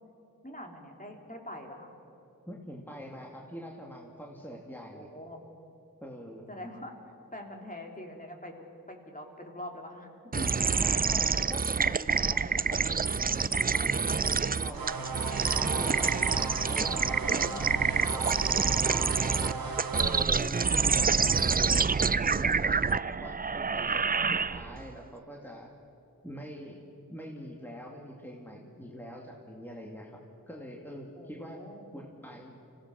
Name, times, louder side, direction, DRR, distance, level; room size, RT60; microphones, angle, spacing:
voice 1, 0.4-1.9 4.9-5.4 6.5-6.9 7.3-10.6 10.9-11.1 17.3-18.1 31.1-31.8, left 1 dB, 20° left, 1 dB, 3.1 m, -44 dB
voice 2, 2.5-5.1 6.0-6.5 10.8-15.2 15.6-17.0 17.3-19.8 20.3-21.9 22.2-25.7 26.2-26.8 27.1-30.2 30.5-31.6 31.9-32.6, equal, 5° left, -1 dB, 2.3 m, -44 dB
sound 1, 10.3-24.9, right 5 dB, 25° right, 0.4 m, -27 dB
sound 2, 14.7-20.3, right 4 dB, 75° right, 1.3 m, -37 dB
25.0 x 16.5 x 6.4 m, 2.7 s
cardioid pair, 45°, 36 cm